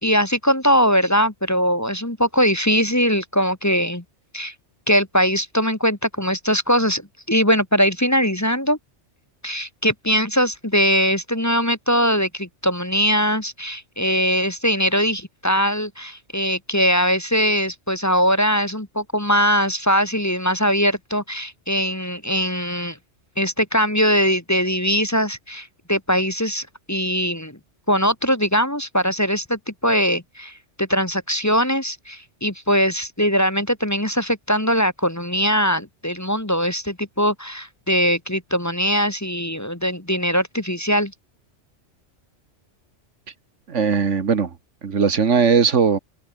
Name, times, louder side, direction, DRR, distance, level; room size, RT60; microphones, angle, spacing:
voice 1, 0.0-4.0 4.3-4.5 4.9-7.0 7.3-8.8 9.4-23.0 23.4-27.6 27.9-41.1, equal, 15° left, 1.6 m, -21 dB
voice 2, 43.7-44.5 44.8-46.0, right 6 dB, 80° right, 1.9 m, -18 dB
omnidirectional pair, 1.2 m